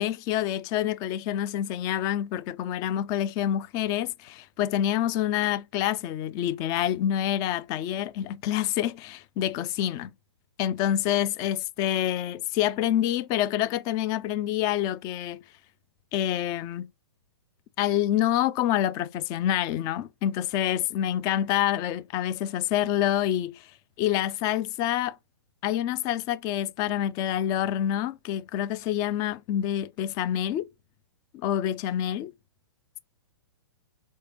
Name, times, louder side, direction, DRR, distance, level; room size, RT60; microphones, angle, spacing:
voice 1, 0.0-10.1 10.6-15.4 16.1-16.9 17.8-23.7 24.0-25.1 25.6-30.7 31.3-32.3, left 11 dB, 25° left, 0.3 m, -27 dB
4.2 x 3.2 x 2.9 m
hypercardioid pair, 120°, 14 cm